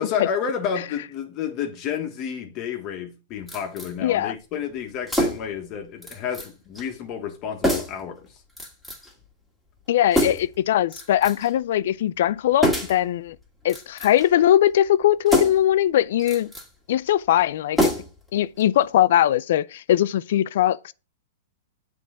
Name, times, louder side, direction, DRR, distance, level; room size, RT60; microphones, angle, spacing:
voice 1, 0.0-8.2, left 7 dB, 35° left, 1.4 m, -30 dB
sound 1, 3.5-3.9 5.1-5.6 6.0-6.5 6.8-6.9 7.6-8.0 8.6-9.1 10.1-10.6 10.9-11.5 12.6-13.0 13.6-14.3 15.3-15.7 16.2-16.7 17.8-18.3 18.6-18.7, equal, ahead, 2.0 m, -25 dB
voice 2, 4.0-4.3 9.9-13.4 13.6-16.5 16.9-17.9 18.3-20.9, left 12 dB, 65° left, 0.4 m, -20 dB
7.4 x 3.8 x 5.7 m
hypercardioid pair, 140°, 0 cm